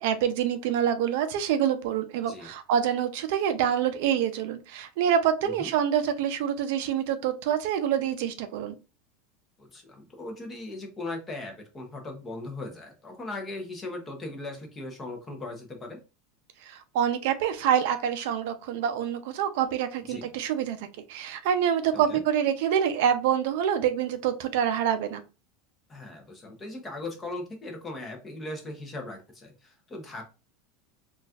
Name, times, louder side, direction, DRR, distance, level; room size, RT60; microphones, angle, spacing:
voice 1, 0.0-8.8 16.6-25.2, right 9 dB, 60° right, 9 dB, 0.5 m, -26 dB
voice 2, 9.6-16.0 20.1-20.3 21.9-22.2 25.9-30.2, left 2 dB, 15° left, 3 dB, 0.7 m, -38 dB
4.0 x 2.4 x 2.3 m, 0.31 s
supercardioid pair, 165°, 0 cm